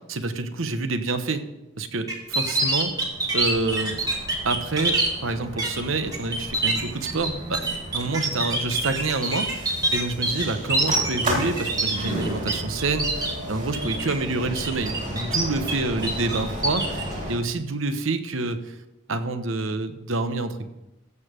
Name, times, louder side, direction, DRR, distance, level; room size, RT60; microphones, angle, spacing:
voice 1, 0.1-1.4 1.8-2.9 3.3-3.9 4.4-7.6 7.9-18.6 19.1-20.7, right 3 dB, 75° right, 9 dB, 1.0 m, -27 dB
sound 1, 2.1-5.1 5.6-5.8 6.1-12.5 12.8-13.3 13.7-14.1 14.5-15.7 16.0-17.0, right 2 dB, 15° right, 1.6 m, -25 dB
sound 2, 2.3-17.4, right 1 dB, 35° right, 3.3 m, -34 dB
15.5 x 6.8 x 5.1 m, 0.95 s
head